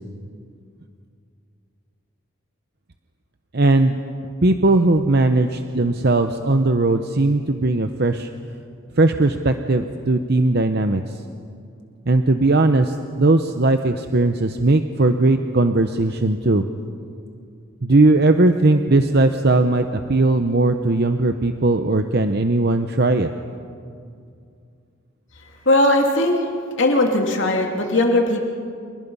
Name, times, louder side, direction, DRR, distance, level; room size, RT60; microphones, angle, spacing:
voice 1, 3.5-4.0 4.4-8.3 9.0-11.0 12.1-16.6 17.8-23.3, right 2 dB, 50° right, 7 dB, 0.8 m, -18 dB
voice 2, 25.4-26.4 26.8-28.4, left 1 dB, 60° left, 1 dB, 2.7 m, -19 dB
30.0 x 28.5 x 5.5 m, 2.4 s
head